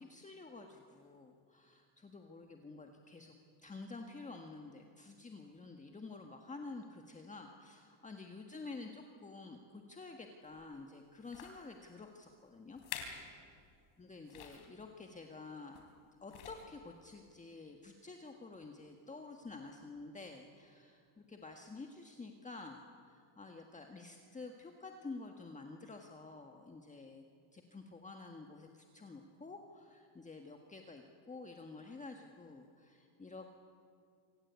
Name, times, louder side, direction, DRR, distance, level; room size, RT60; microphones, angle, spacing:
voice 1, 0.0-3.4 3.6-12.8 14.0-15.8 16.2-27.2 27.5-33.5, left 3 dB, 15° left, 3 dB, 1.6 m, -50 dB
sound 1, 10.5-10.7 11.2-11.6 12.3-12.4 12.7-13.3 13.6-13.7 14.3-14.7 15.7-16.0 16.3-16.8 17.5-17.6, left 8 dB, 70° left, 4.2 m, -47 dB
26.5 x 18.0 x 8.3 m, 2.3 s
cardioid pair, 125°, 50 cm